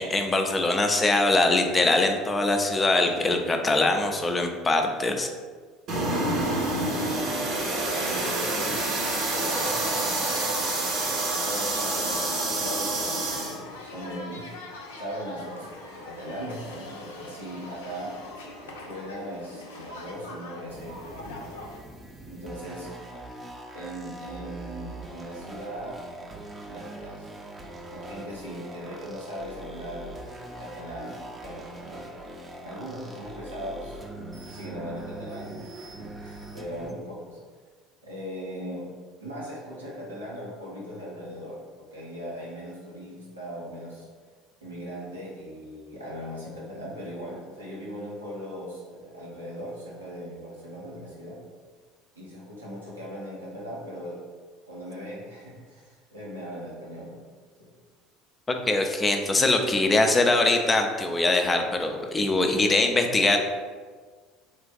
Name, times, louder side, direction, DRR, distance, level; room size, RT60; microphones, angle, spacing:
voice 1, 0.0-5.3 58.5-63.4, left 2 dB, 20° left, 4 dB, 0.5 m, -22 dB
sound 1, 5.9-13.6, right 2 dB, 50° right, 0.8 m, -27 dB
sound 2, 6.1-21.8, left 2 dB, 70° left, 0.6 m, -42 dB
voice 2, 6.8-7.4 7.8-8.9 9.3-10.7 11.3-14.6 14.9-18.2 18.6-21.6 22.3-22.9 23.7-26.0 26.7-27.3 27.9-30.2 30.6-32.1 32.6-37.4 38.0-38.9 39.2-44.1 44.6-51.4 52.1-54.2 54.7-57.2 57.6-57.7, equal, 85° right, -6 dB, 0.8 m, -39 dB
sound 3, 20.7-36.9, right 1 dB, 20° right, 0.7 m, -42 dB
3.8 x 2.5 x 3.8 m, 1.5 s
figure-of-eight pair, 65°, 0 cm